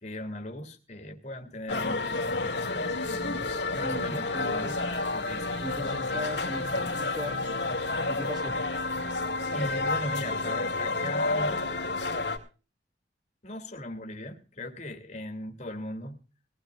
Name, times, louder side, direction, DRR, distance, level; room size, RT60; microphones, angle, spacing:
voice 1, 0.0-4.8 5.1-5.6 9.5-11.6 13.4-16.2, left 1 dB, 40° left, 3 dB, 2.5 m, -38 dB
sound 1, 1.7-12.4, left 3 dB, 75° left, 2.5 m, -30 dB
sound 2, 2.4-8.2, right 1 dB, 90° right, 6.1 m, -51 dB
voice 2, 3.8-4.6 5.6-7.4 8.1-8.8, equal, 25° right, 5 dB, 2.4 m, -38 dB
21.0 x 16.0 x 2.5 m, 0.34 s
head